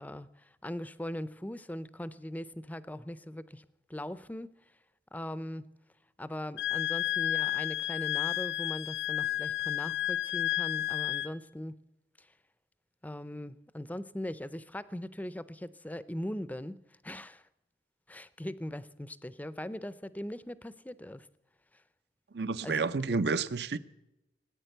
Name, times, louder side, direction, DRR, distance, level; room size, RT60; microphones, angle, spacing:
voice 1, 0.0-3.6 3.9-4.5 5.1-5.7 6.2-11.8 12.2-12.3 13.0-17.5 18.1-21.3 21.7-21.8 22.6-23.1, left 1 dB, 10° left, 0.5 m, -40 dB
Wind instrument woodwind instrument, 6.6-11.3, left 14 dB, 65° left, 0.7 m, -31 dB
voice 2, 22.3-23.8, right 4 dB, 65° right, 0.6 m, -30 dB
18.0 x 9.4 x 7.9 m
head